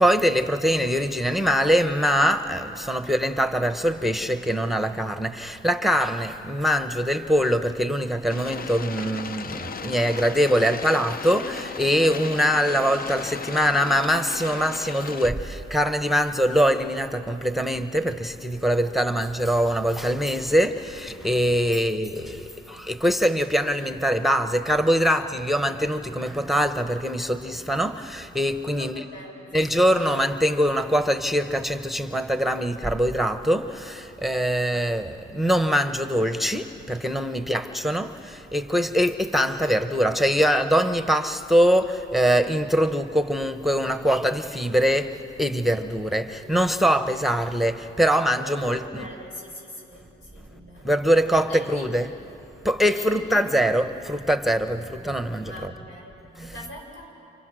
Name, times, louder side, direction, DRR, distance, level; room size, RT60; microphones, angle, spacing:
voice 1, 0.0-29.0 29.5-45.1 45.4-49.1 50.8-52.1 52.6-55.7 56.4-56.5, equal, ahead, 0.9 m, -23 dB
sound 1, 8.3-15.3, left 5 dB, 45° left, 0.8 m, -36 dB
voice 2, 18.7-19.1 21.6-22.2 27.3-27.6 28.7-29.8 34.2-35.2 37.3-37.7 46.1-46.4 48.4-51.0 51.3-52.2 52.8-53.7 55.4-57.1, left 1 dB, 80° left, 6.7 m, -43 dB
30.0 x 29.0 x 6.3 m
cardioid pair, 90°, 20 cm